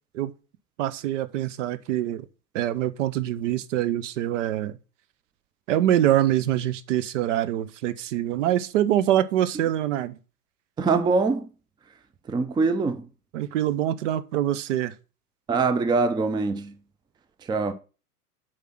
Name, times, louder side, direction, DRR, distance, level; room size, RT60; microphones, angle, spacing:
voice 1, 0.8-2.3 2.5-4.8 5.7-10.2 13.3-14.9, right 12 dB, 50° right, 0.9 m, -24 dB
voice 2, 10.8-11.5 12.3-13.1 15.5-16.7 17.5-17.7, right 4 dB, 10° right, 0.6 m, -23 dB
8.3 x 4.9 x 5.8 m
figure-of-eight pair, 95°, 46 cm